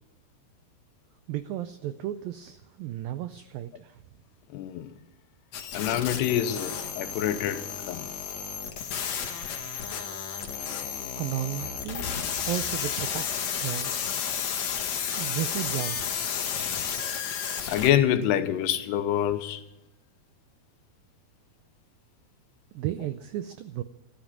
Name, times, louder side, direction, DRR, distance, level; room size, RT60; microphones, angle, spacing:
voice 1, 1.3-4.0 11.2-12.0 12.5-13.9 15.2-16.3 22.7-23.8, right 13 dB, 85° right, 12 dB, 2.0 m, -34 dB
voice 2, 4.5-4.9 5.7-8.1 16.6-16.9 17.7-19.6, left 11 dB, 80° left, 10 dB, 2.9 m, -26 dB
sound 1, 5.5-17.9, left 7 dB, 55° left, 2.0 m, -32 dB
sound 2, 11.6-13.9, left 1 dB, 30° right, 6.6 m, -45 dB
14.5 x 12.5 x 7.3 m, 0.94 s
omnidirectional pair, 4.9 m